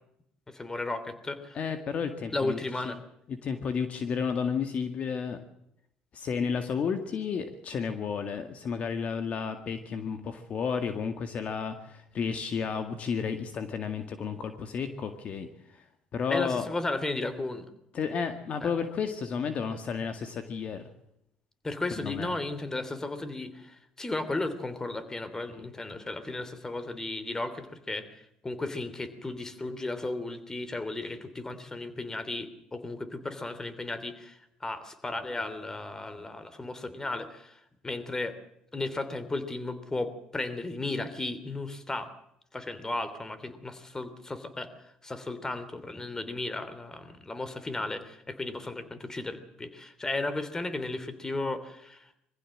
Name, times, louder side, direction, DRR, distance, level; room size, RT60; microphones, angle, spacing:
voice 1, 0.5-1.6 2.3-3.0 16.3-17.7 18.6-18.7 21.6-38.4 38.7-42.1 42.5-52.1, left 2 dB, 20° left, 12 dB, 3.0 m, -35 dB
voice 2, 1.6-2.6 2.9-3.0 3.4-5.4 6.1-15.5 15.7-15.8 16.1-16.7 17.9-20.9 22.0-22.3 25.5-25.7, left 6 dB, 50° left, 8 dB, 1.9 m, -32 dB
22.5 x 15.0 x 7.6 m, 0.78 s
supercardioid pair, 80°, 3 cm